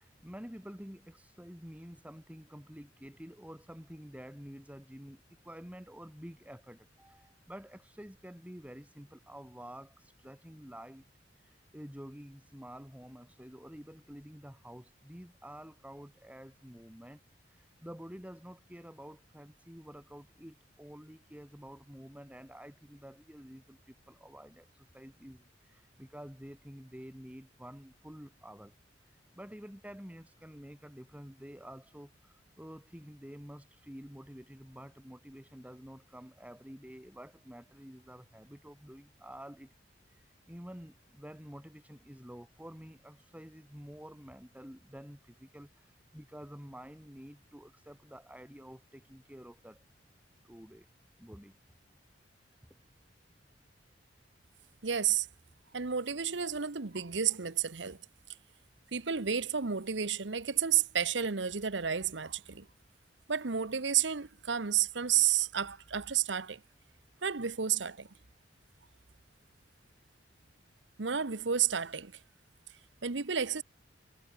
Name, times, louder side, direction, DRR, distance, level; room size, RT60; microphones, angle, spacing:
voice 1, 0.0-11.0 11.4-28.7 29.0-39.7 40.1-49.8 50.4-50.9 51.2-51.6, equal, 10° right, 3.9 m, -49 dB
voice 2, 54.8-55.3 55.7-58.0 58.9-62.7 63.3-66.6 67.2-68.1 71.0-72.1 73.0-73.6, right 8 dB, 75° right, 1.1 m, -31 dB
head